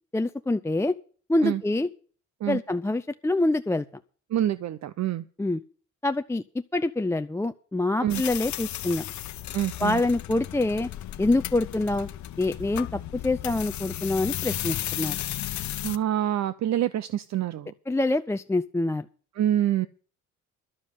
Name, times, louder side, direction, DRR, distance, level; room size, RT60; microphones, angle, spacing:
voice 1, 0.1-1.0 1.3-1.9 2.5-3.9 5.4-5.6 6.0-9.0 9.8-10.9 11.2-12.1 12.4-15.2 17.9-19.1, left 2 dB, 10° left, 8 dB, 0.5 m, -26 dB
voice 2, 4.3-5.2 8.0-8.2 9.5-10.0 15.8-17.7 19.4-19.9, right 11 dB, 65° right, 15 dB, 0.7 m, -26 dB
sound 1, 8.1-16.0, left 13 dB, 70° left, 0.9 m, -34 dB
12.0 x 7.3 x 8.3 m, 0.42 s
cardioid pair, 90°, 30 cm